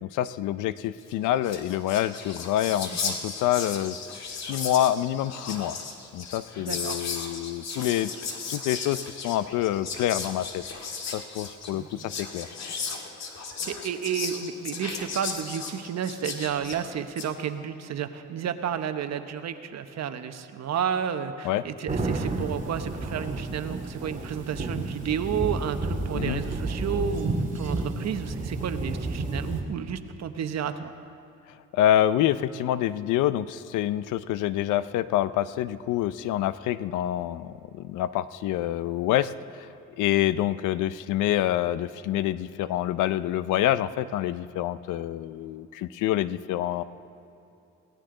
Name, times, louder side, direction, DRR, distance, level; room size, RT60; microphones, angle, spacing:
voice 1, 0.0-5.8 6.1-8.1 8.5-10.6 11.1-12.5 21.4-21.6 26.1-26.4 31.7-39.7 40.0-46.8, left 12 dB, 90° left, 15 dB, 0.6 m, -27 dB
Whispering, 1.1-1.2 1.4-17.3, left 5 dB, 60° left, 1.9 m, -36 dB
voice 2, 6.6-7.0 11.7-12.0 13.6-30.9, right 8 dB, 60° right, 9 dB, 1.1 m, -31 dB
sound 1, 21.9-29.6, right 2 dB, 25° right, 2.4 m, -31 dB
22.0 x 17.0 x 3.9 m, 2.9 s
cardioid pair, 90°, 30 cm